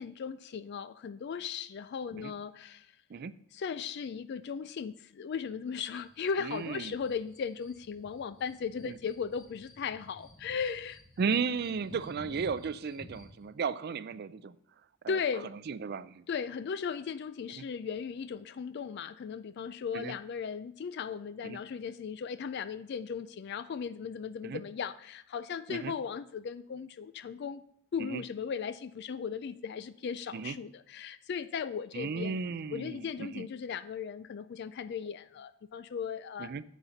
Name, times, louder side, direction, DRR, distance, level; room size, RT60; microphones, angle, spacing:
voice 1, 0.0-2.9 3.5-11.0 15.1-15.5 16.3-27.6 27.9-32.4 32.7-36.5, left 6 dB, 50° left, 14 dB, 0.3 m, -37 dB
sound 1, 5.9-13.4, equal, 70° left, 3.3 m, -53 dB
voice 2, 6.4-7.0 8.9-9.0 11.2-14.5 15.0-15.2 15.7-16.2 17.6-17.7 19.9-20.1 21.4-21.6 24.4-24.6 25.7-25.9 28.0-28.2 30.3-30.6 31.9-33.5 36.4-36.6, right 5 dB, 45° right, 16 dB, 0.4 m, -35 dB
10.5 x 7.4 x 4.0 m, 0.72 s
head